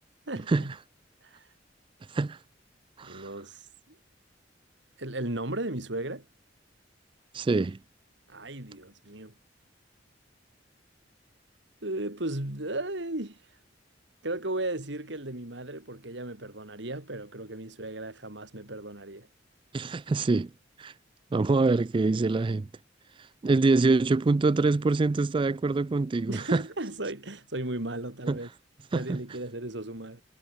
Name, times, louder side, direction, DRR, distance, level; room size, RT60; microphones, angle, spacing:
voice 1, 0.3-0.7 1.2-1.5 3.0-4.0 5.0-6.3 8.3-9.4 11.8-13.4 14.2-19.3 26.3-28.5 28.9-30.2, right 1 dB, 70° right, 3.5 m, -35 dB
voice 2, 7.3-7.8 19.7-20.5 20.8-20.9 21.3-22.7 23.4-26.6 28.3-28.4 28.9-29.2, right 3 dB, 25° right, 0.4 m, -25 dB
head